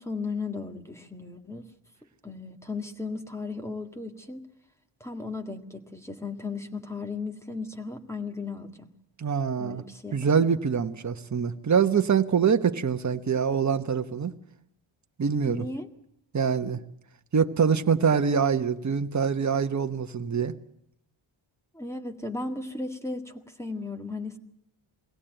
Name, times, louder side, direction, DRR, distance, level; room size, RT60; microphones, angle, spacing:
voice 1, 0.0-1.7 2.2-4.5 5.0-8.9 9.6-10.3 15.5-15.9 21.7-24.4, left 3 dB, 5° left, 5 dB, 1.8 m, -36 dB
voice 2, 9.2-9.8 10.1-14.3 15.2-15.7 16.3-16.8 17.3-20.5, right 6 dB, 35° right, 7 dB, 1.2 m, -24 dB
22.0 x 17.0 x 9.0 m, 0.75 s
cardioid pair, 95°, 49 cm